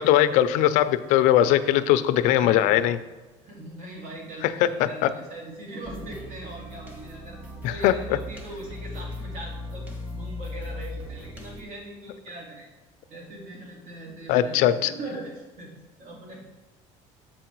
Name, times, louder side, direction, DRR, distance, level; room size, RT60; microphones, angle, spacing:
voice 1, 0.0-3.0 4.4-5.1 7.6-7.9 14.3-14.9, left 12 dB, 80° left, 13 dB, 0.5 m, -20 dB
voice 2, 2.3-2.8 3.4-7.4 7.7-12.7 13.1-15.7 16.0-16.4, right 1 dB, 70° right, -2 dB, 2.5 m, -40 dB
sound 1, 5.8-11.6, left 1 dB, 10° right, 1.1 m, -38 dB
7.5 x 4.8 x 4.5 m, 1.2 s
cardioid pair, 130°, 13 cm